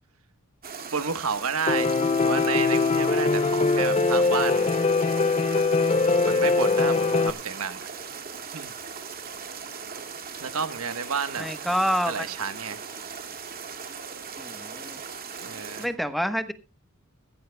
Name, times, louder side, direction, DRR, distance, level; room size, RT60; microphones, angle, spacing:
sound 1, 0.6-15.9, right 6 dB, 45° right, 2.2 m, -39 dB
voice 1, 0.9-4.7 6.2-7.9 8.5-8.7 10.4-11.5 12.1-12.9 15.4-15.8, right 6 dB, 70° right, 1.2 m, -31 dB
Piano, 1.7-7.3, left 3 dB, 30° left, 0.5 m, -22 dB
voice 2, 11.4-12.3 14.4-15.0 15.8-16.5, equal, ahead, 1.1 m, -27 dB
17.0 x 16.0 x 2.2 m
head